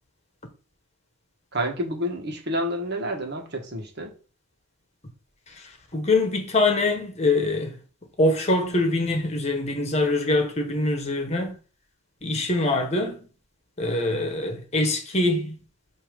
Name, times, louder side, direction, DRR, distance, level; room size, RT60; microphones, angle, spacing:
voice 1, 1.5-4.1, equal, 55° right, 1.5 m, -29 dB
voice 2, 5.9-7.7 8.2-11.6 12.2-13.2 13.8-15.5, left 2 dB, 30° left, 1.2 m, -24 dB
8.3 x 2.9 x 5.1 m
head